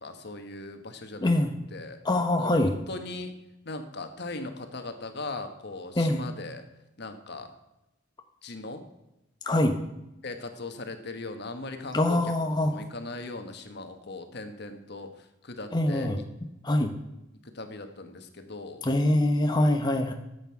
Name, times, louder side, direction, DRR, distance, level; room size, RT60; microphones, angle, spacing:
voice 1, 0.0-1.3 1.7-2.0 2.4-3.3 3.6-6.6 7.0-7.5 8.4-8.8 10.2-12.3 12.6-16.1 17.4-18.8, left 2 dB, 60° left, 7 dB, 1.5 m, -39 dB
voice 2, 1.2-1.5 2.0-2.7 6.0-6.3 9.5-9.8 11.9-12.8 15.7-16.2 16.6-16.9 18.8-20.1, left 1 dB, 20° left, 4 dB, 0.8 m, -24 dB
13.5 x 8.3 x 5.9 m, 0.91 s
head